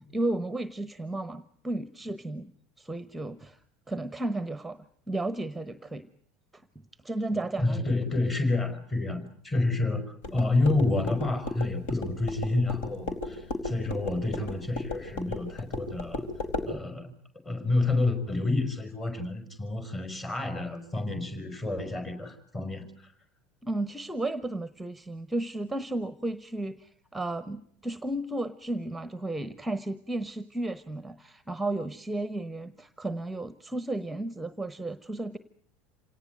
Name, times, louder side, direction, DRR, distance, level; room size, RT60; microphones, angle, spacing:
voice 1, 0.1-2.5 2.8-3.6 3.9-4.8 5.1-6.1 6.5-6.6 7.0-7.8 23.6-35.4, right 2 dB, 5° right, 14 dB, 1.0 m, -33 dB
voice 2, 7.6-16.2 16.7-17.1 17.4-23.1, left 2 dB, 20° left, 8 dB, 4.9 m, -29 dB
sound 1, 10.2-16.7, left 2 dB, 60° left, 4.5 m, -35 dB
27.5 x 18.5 x 9.2 m, 0.65 s
figure-of-eight pair, 75°, 0 cm